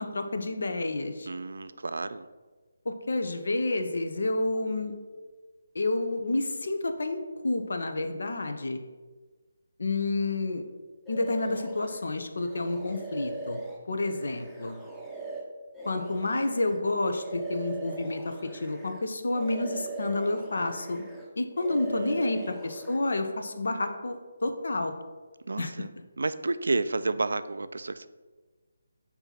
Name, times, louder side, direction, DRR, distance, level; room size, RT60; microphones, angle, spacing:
voice 1, 0.0-1.3 2.9-4.9 5.7-8.8 9.8-10.6 11.1-13.6 13.9-14.8 15.8-21.0 21.4-24.2 24.4-24.9 25.6-25.7, left 2 dB, 70° left, 7 dB, 0.7 m, -29 dB
voice 2, 1.3-2.3 21.7-22.5 25.5-25.9 26.2-28.1, right 3 dB, 75° right, 13 dB, 0.3 m, -31 dB
sound 1, 11.1-12.0 12.4-19.0 19.3-21.3 21.6-23.0, right 2 dB, 5° left, 0.7 m, -40 dB
6.7 x 2.8 x 5.8 m, 1.3 s
figure-of-eight pair, 155°, 0 cm